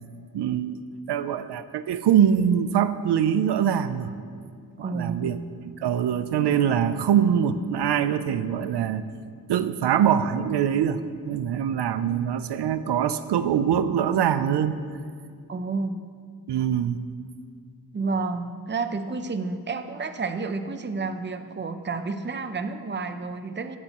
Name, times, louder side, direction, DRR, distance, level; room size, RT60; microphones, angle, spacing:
voice 1, 0.3-0.8 1.1-4.1 4.8-5.4 5.6-9.0 9.5-14.8 16.5-17.0, right 9 dB, 85° right, 12 dB, 0.5 m, -23 dB
voice 2, 4.8-5.3 15.5-16.1 17.9-23.8, right 4 dB, 30° right, 9 dB, 0.7 m, -30 dB
18.5 x 8.5 x 3.0 m, 2.2 s
wide cardioid pair, 90°, 40 cm